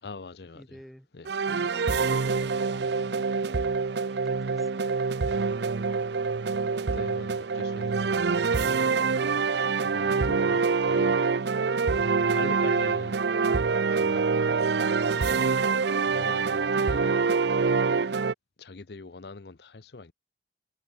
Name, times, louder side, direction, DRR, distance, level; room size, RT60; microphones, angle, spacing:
voice 1, 0.0-0.8 1.1-1.3 6.5-9.0 9.8-11.2 12.3-13.2 13.9-14.7 16.1-17.4 18.6-20.1, left 3 dB, 65° left, 0.7 m, -43 dB
voice 2, 0.5-1.1 1.5-1.7 2.0-3.2 4.2-4.9, equal, ahead, 2.0 m, -50 dB
sound 1, 1.3-18.3, right 4 dB, 70° right, 0.5 m, -25 dB
sound 2, 2.1-7.2, right 5 dB, 90° right, 6.4 m, -57 dB
sound 3, 5.2-5.5 6.2-6.7 7.5-7.9 8.8-9.0, left 2 dB, 35° left, 3.9 m, -59 dB
head